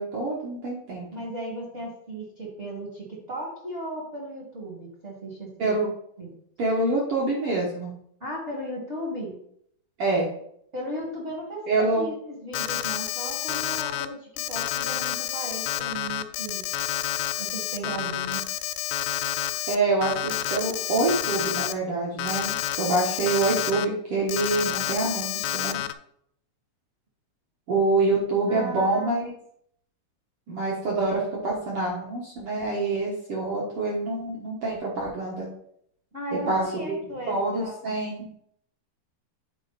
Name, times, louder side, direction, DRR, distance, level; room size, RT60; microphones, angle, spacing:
voice 1, 0.0-1.2 5.6-5.9 6.6-7.9 10.0-10.3 11.7-12.1 19.7-25.8 27.7-29.3 30.5-35.5 36.5-37.0 37.3-38.3, right 2 dB, 85° right, -3 dB, 1.2 m, -26 dB
voice 2, 1.1-5.8 6.2-6.3 8.2-9.3 10.7-16.6 17.4-18.4 28.5-29.2 36.1-38.0, right 1 dB, 55° right, -4 dB, 0.7 m, -36 dB
Alarm, 12.5-14.1 14.4-19.8 20.0-21.7 22.2-23.9 24.3-25.9, left 13 dB, 85° left, 2.4 m, -29 dB
9.8 x 4.3 x 4.1 m, 0.68 s
omnidirectional pair, 4.7 m